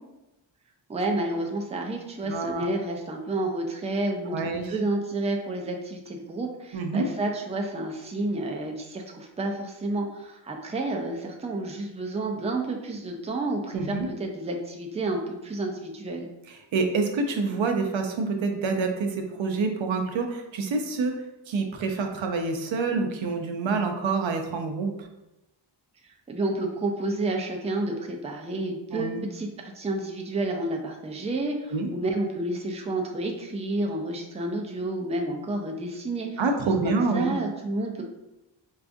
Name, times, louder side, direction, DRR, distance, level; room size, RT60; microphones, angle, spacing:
voice 1, 0.9-16.3 26.0-36.4 36.8-38.0, right 2 dB, 15° right, 2 dB, 0.4 m, -30 dB
voice 2, 2.2-2.7 4.3-4.7 6.7-7.1 13.7-14.1 16.5-25.1 28.9-29.2 31.7-31.9 36.4-37.3, right 4 dB, 90° right, 4 dB, 0.6 m, -27 dB
4.6 x 2.4 x 2.5 m, 0.95 s
wide cardioid pair, 135°, 45 cm